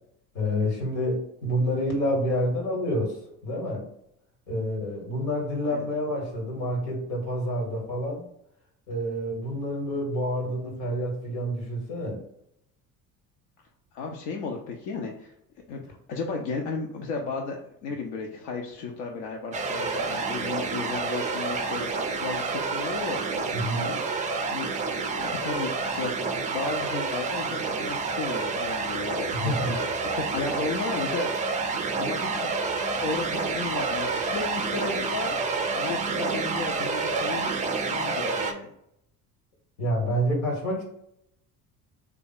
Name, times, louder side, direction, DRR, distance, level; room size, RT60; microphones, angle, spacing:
voice 1, 0.3-3.2 3.4-3.8 4.5-8.2 8.9-12.2 23.5-23.9 29.3-29.8 39.8-40.8, equal, 80° left, 0 dB, 1.4 m, -28 dB
voice 2, 13.9-15.3 15.7-29.9 30.2-35.4 35.7-37.5 37.9-38.7, left 4 dB, 60° left, 1 dB, 0.7 m, -34 dB
sound 1, 19.5-38.5, right 4 dB, 20° right, 0.4 m, -29 dB
3.3 x 2.3 x 3.8 m, 0.75 s
hypercardioid pair, 60°, 47 cm